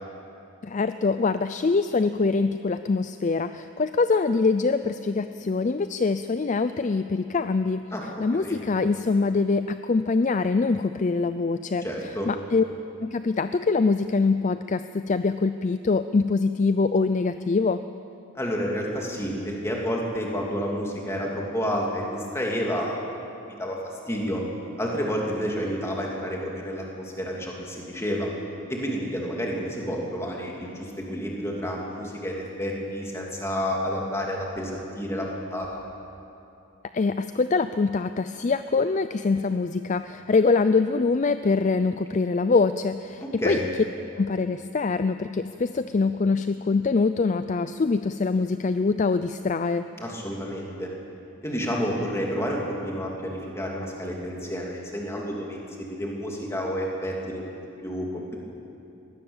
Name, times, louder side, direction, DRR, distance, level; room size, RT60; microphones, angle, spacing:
voice 1, 0.6-7.8 8.2-11.9 12.3-12.6 13.0-17.8 36.9-43.6 44.2-49.9, left 4 dB, 35° left, 11 dB, 0.4 m, -24 dB
voice 2, 7.9-8.6 11.8-12.3 18.3-24.4 24.8-28.3 28.7-35.8 43.2-43.7 50.0-50.9 51.4-55.6 55.9-57.4 57.8-58.4, equal, 10° left, -2 dB, 2.9 m, -30 dB
21.5 x 17.0 x 7.3 m, 2.8 s
head